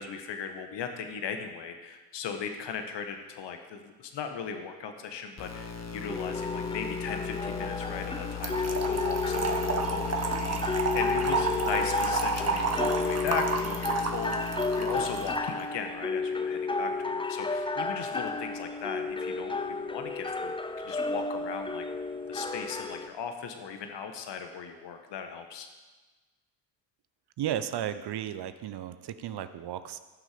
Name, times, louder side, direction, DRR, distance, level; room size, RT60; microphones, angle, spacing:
voice 1, 0.0-20.6 20.8-21.8 22.3-25.7, left 6 dB, 60° left, 6 dB, 1.5 m, -38 dB
sound 1, 5.4-15.4, left 6 dB, 30° left, 1.5 m, -38 dB
sound 2, 6.1-23.1, left 3 dB, 10° left, 0.6 m, -32 dB
Trickle dribble / Fill (with liquid), 8.4-15.5, right 5 dB, 30° right, 1.5 m, -31 dB
voice 2, 27.4-30.0, right 10 dB, 55° right, 11 dB, 0.8 m, -34 dB
16.0 x 6.3 x 5.2 m, 1.2 s
hypercardioid pair, 55°, 49 cm